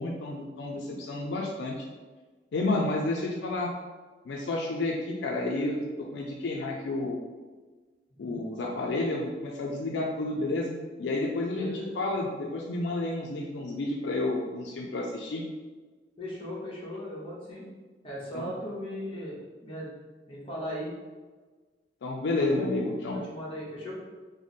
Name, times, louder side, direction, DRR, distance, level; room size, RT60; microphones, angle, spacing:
voice 1, 0.0-1.8 2.5-3.7 4.3-7.2 8.2-15.4 18.3-18.5 22.0-23.2, left 2 dB, 75° left, -1 dB, 0.4 m, -30 dB
voice 2, 8.1-8.4 11.6-11.9 16.2-17.7 18.0-19.9 20.3-20.9 22.3-23.9, equal, 30° left, -6 dB, 1.0 m, -37 dB
3.2 x 2.1 x 4.0 m, 1.3 s
head